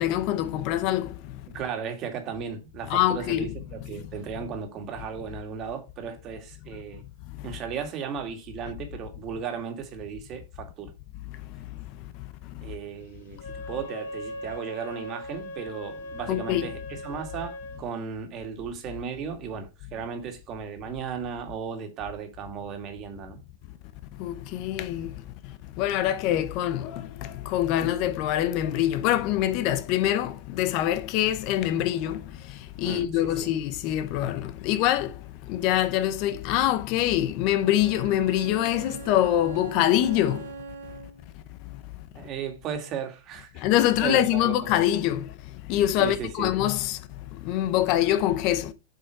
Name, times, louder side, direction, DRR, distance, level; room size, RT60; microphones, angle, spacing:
voice 1, 0.0-1.3 2.9-3.5 7.4-7.5 11.5-11.6 12.5-12.7 16.3-16.7 24.2-25.2 25.8-40.5 43.6-47.0 47.3-48.7, left 12 dB, 45° left, 0.8 m, -25 dB
voice 2, 1.5-7.0 7.4-10.9 12.6-23.4 32.8-33.5 42.2-43.6 44.0-44.7 46.0-46.5, right 7 dB, 30° right, 2.2 m, -35 dB
Wind instrument woodwind instrument, 13.3-17.8, left 1 dB, 70° left, 2.3 m, -39 dB
Bowed string instrument, 37.5-41.3, right 4 dB, 75° right, 1.9 m, -40 dB
7.9 x 5.3 x 4.6 m
supercardioid pair, 145°, 0 cm